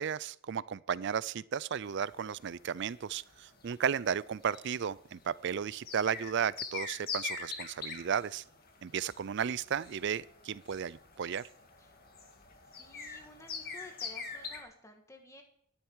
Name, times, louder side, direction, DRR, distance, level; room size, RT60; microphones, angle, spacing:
voice 1, 0.0-8.4 8.8-11.5, right 7 dB, 55° right, 0.4 m, -34 dB
sound 1, 1.9-14.6, left 5 dB, 45° left, 2.0 m, -44 dB
voice 2, 12.6-15.4, left 1 dB, 15° left, 1.8 m, -53 dB
12.5 x 10.5 x 4.6 m
head